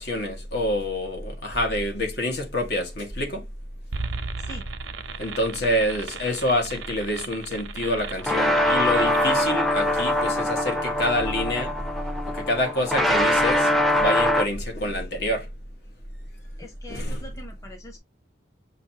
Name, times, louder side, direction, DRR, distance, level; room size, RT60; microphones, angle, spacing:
voice 1, 0.0-3.4 5.2-11.8 12.3-15.5 16.9-17.2, left 1 dB, 60° left, 1.6 m, -27 dB
sound 1, 3.9-9.4, right 4 dB, 90° right, 0.7 m, -36 dB
sound 2, 8.2-14.5, left 1 dB, ahead, 0.6 m, -23 dB
voice 2, 16.6-18.0, left 1 dB, 15° left, 1.1 m, -42 dB
6.4 x 2.7 x 2.9 m
head